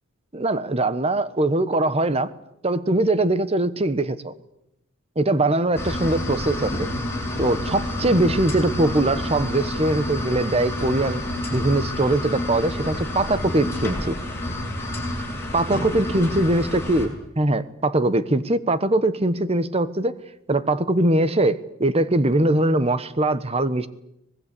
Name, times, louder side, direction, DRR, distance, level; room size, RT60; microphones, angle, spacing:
voice 1, 0.3-2.3 2.6-4.3 5.2-6.9 7.4-11.2 11.5-14.2 15.5-20.1 20.5-23.9, right 2 dB, 30° right, 14 dB, 1.2 m, -22 dB
sound 1, 5.7-17.1, left 1 dB, 10° left, 7.1 m, -29 dB
25.0 x 20.0 x 8.5 m, 0.82 s
head